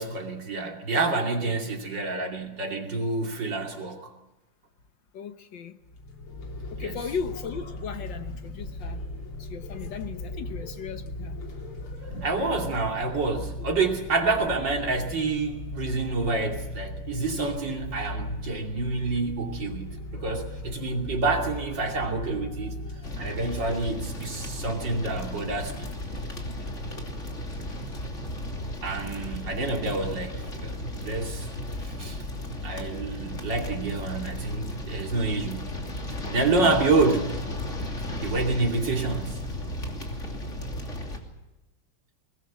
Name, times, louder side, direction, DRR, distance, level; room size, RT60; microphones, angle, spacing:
voice 1, 0.0-4.0 6.8-6.9 12.2-22.8 23.2-25.9 28.8-31.5 31.8-32.2 32.6-35.7 36.3-37.4 38.2-39.4, right 3 dB, 55° right, 2 dB, 3.3 m, -28 dB
voice 2, 1.1-1.6 5.1-5.8 6.7-9.0 9.4-11.4, left 6 dB, 65° left, 9 dB, 1.7 m, -36 dB
sound 1, 5.8-24.1, left 1 dB, 85° left, 4.0 m, -38 dB
sound 2, 23.0-41.2, left 1 dB, 35° left, 3.2 m, -35 dB
22.0 x 20.5 x 7.2 m, 1.0 s
omnidirectional pair, 2.3 m